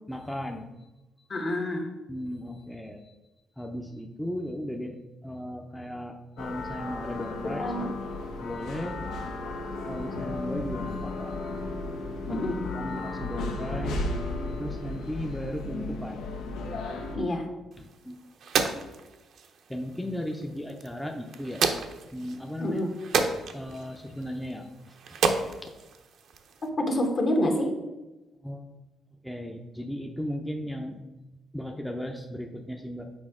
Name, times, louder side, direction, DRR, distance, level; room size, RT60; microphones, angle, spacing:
voice 1, 0.1-0.7 2.1-3.1 3.6-5.0 5.2-7.7 8.4-9.0 9.9-11.3 12.3-12.4 12.7-14.1 14.6-16.3 17.8-18.2 19.7-21.6 22.1-22.8 23.5-25.2 25.6-25.7 28.4-28.7 29.2-31.0 31.5-33.1, equal, ahead, 2 dB, 0.5 m, -36 dB
voice 2, 1.3-1.9 7.6-7.9 12.3-12.6 17.1-17.5 22.6-22.9 26.8-27.7, left 1 dB, 45° left, 3 dB, 1.2 m, -27 dB
sound 1, 6.4-17.2, left 2 dB, 85° left, 0.7 m, -34 dB
sound 2, 17.7-26.7, right 5 dB, 70° right, 0.6 m, -32 dB
6.2 x 4.5 x 3.6 m, 1.1 s
cardioid pair, 90°, 0 cm